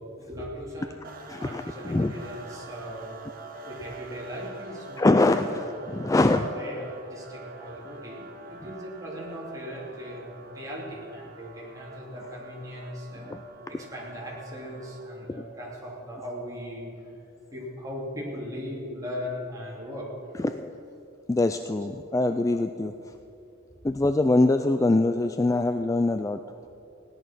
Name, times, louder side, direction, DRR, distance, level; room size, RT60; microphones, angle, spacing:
voice 1, 0.2-1.1 1.3-3.2 3.6-5.6 6.3-17.1 17.5-20.3, equal, 15° right, -5 dB, 3.1 m, -38 dB
sound 1, 1.0-15.2, right 2 dB, 45° right, 1.5 m, -45 dB
voice 2, 1.3-2.1 5.0-6.5 13.3-13.4 15.3-15.4 20.4-20.7 21.3-22.9 23.8-26.7, left 2 dB, 15° left, 8 dB, 0.3 m, -24 dB
16.5 x 10.5 x 6.1 m, 2.7 s
head